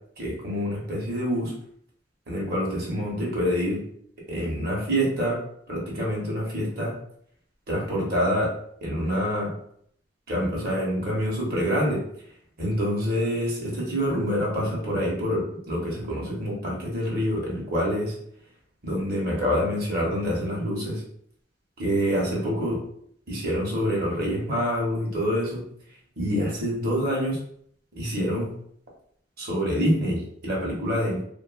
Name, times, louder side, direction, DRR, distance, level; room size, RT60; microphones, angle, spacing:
voice 1, 0.2-1.5 2.3-3.8 4.3-5.4 5.7-6.9 7.7-8.5 8.8-9.5 10.3-12.0 12.6-18.1 18.8-21.0 21.8-22.8 23.3-25.6 26.2-27.4 27.9-28.5 29.4-31.2, equal, 55° right, -3 dB, 1.1 m, -26 dB
2.6 x 2.5 x 2.4 m, 0.66 s
head